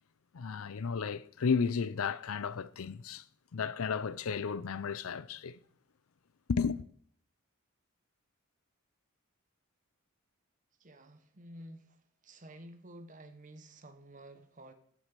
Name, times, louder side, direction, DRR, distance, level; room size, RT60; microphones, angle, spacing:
voice 1, 0.3-3.2 3.5-5.6 6.5-6.8, left 5 dB, 75° left, 0.5 m, -33 dB
voice 2, 10.8-12.0 12.2-14.7, right 1 dB, 35° right, 1.1 m, -51 dB
9.4 x 8.4 x 6.6 m
head